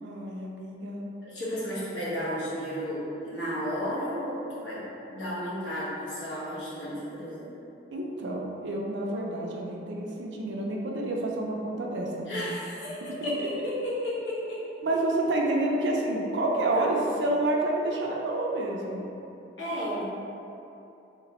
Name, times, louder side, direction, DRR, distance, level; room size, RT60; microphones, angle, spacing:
voice 1, 0.0-1.1 7.9-12.5 13.2-13.3 14.8-19.0, right 2 dB, 75° right, -1 dB, 0.5 m, -29 dB
voice 2, 1.2-4.8 5.1-7.5 12.3-14.6 16.7-16.9 19.6-20.0, equal, 75° left, -9 dB, 1.2 m, -33 dB
3.4 x 2.9 x 2.9 m, 2.8 s
head